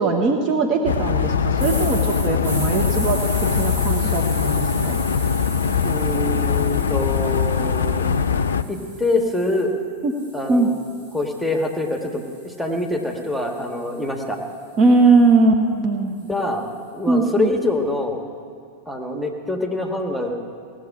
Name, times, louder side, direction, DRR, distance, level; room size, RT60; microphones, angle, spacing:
voice 1, 0.0-3.2 3.6-5.0 10.0-10.1 10.5-10.7 14.8-16.1 17.1-17.5, right 3 dB, 30° right, 3 dB, 1.3 m, -19 dB
sound 1, 0.9-8.6, left 6 dB, 65° left, 0.5 m, -21 dB
sound 2, 1.6-9.6 10.1-14.3, right 1 dB, 50° right, 3.8 m, -37 dB
voice 2, 5.8-8.1 8.7-9.7 10.3-10.8 11.1-14.4 16.3-18.2 18.9-20.3, left 2 dB, ahead, 1 dB, 1.8 m, -25 dB
17.5 x 7.6 x 9.7 m, 2.3 s
figure-of-eight pair, 90°, 0 cm